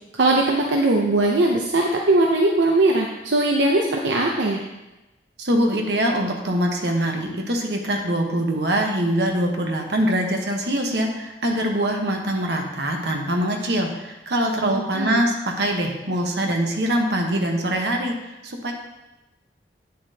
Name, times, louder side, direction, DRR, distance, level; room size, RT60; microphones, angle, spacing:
voice 1, 0.1-4.6 14.6-15.3, right 2 dB, 85° right, 0 dB, 0.6 m, -20 dB
voice 2, 5.4-18.1 18.4-18.7, right 1 dB, 70° right, 2 dB, 1.1 m, -23 dB
8.8 x 6.5 x 2.8 m, 1.0 s
head